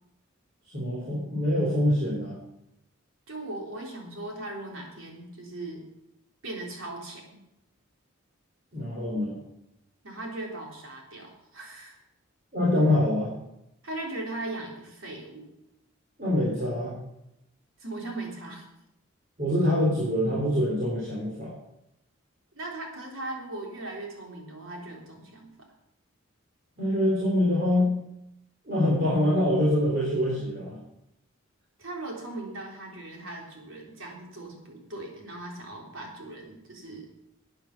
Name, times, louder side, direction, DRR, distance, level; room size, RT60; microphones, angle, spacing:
voice 1, 0.7-2.4 8.7-9.4 12.5-13.3 16.2-16.9 19.4-21.5 26.8-28.0 28.7-30.8, left 1 dB, 40° right, -6 dB, 3.5 m, -25 dB
voice 2, 3.3-5.9 6.4-7.4 10.0-12.0 13.8-15.5 17.8-18.7 22.5-25.5 31.8-37.1, right 2 dB, 75° right, -1 dB, 3.7 m, -38 dB
13.0 x 8.9 x 5.9 m, 0.84 s
head